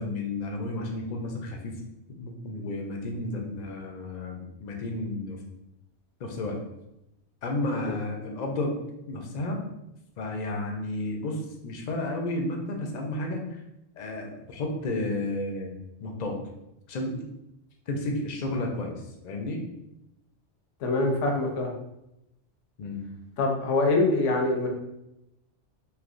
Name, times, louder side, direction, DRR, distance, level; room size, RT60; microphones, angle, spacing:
voice 1, 0.0-1.8 2.1-5.4 6.2-6.6 7.4-8.8 9.1-9.6 10.2-13.6 14.0-16.4 16.9-17.2 17.9-19.6 22.8-23.0, left 2 dB, 55° left, 2 dB, 0.5 m, -32 dB
voice 2, 20.8-21.7 23.4-24.7, left 2 dB, 80° left, 1 dB, 1.0 m, -24 dB
3.3 x 2.8 x 2.5 m, 0.87 s
omnidirectional pair, 1.2 m